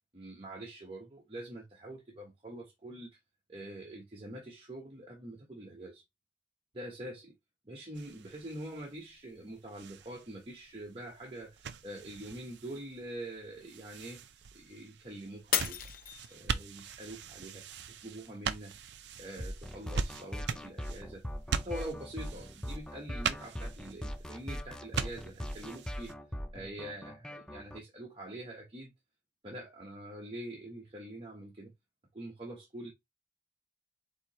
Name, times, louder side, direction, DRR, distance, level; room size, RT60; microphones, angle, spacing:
voice 1, 0.1-3.2 3.5-6.0 6.7-7.3 7.7-14.2 14.5-15.8 16.3-18.8 19.2-26.1 26.5-28.9 29.4-31.7 32.1-32.9, right 1 dB, 30° right, 1.0 m, -45 dB
sound 1, 7.9-26.1, right 6 dB, 80° right, 0.5 m, -42 dB
Shatter, 15.5-16.8 17.3-17.8 18.3-18.4, left 9 dB, 55° left, 0.6 m, -33 dB
sound 2, 19.4-27.8, equal, 5° left, 0.4 m, -41 dB
4.5 x 2.8 x 4.1 m
head